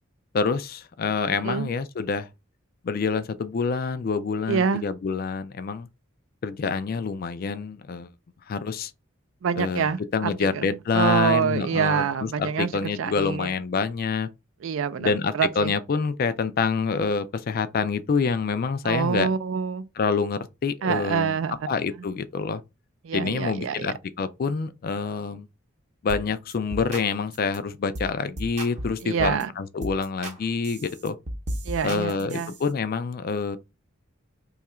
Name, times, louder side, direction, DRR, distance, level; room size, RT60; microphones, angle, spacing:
voice 1, 0.3-2.3 2.8-5.9 6.4-8.1 8.5-8.9 9.6-9.9 10.1-14.3 15.0-19.3 20.0-21.4 21.7-22.6 23.1-25.5 26.0-31.2 31.8-33.6, left 5 dB, 45° left, 0.3 m, -27 dB
voice 2, 4.5-4.8 9.4-10.7 10.9-13.5 14.6-15.7 18.8-19.8 20.8-21.7 23.0-23.9 29.0-29.5 31.6-32.5, right 7 dB, 65° right, 0.4 m, -26 dB
sound 1, 26.1-26.3 26.5-27.1 27.3-27.6 27.9-28.1 28.4-29.4 29.8-30.4 30.6-32.7, right 1 dB, 35° right, 0.7 m, -35 dB
2.8 x 2.4 x 4.2 m
head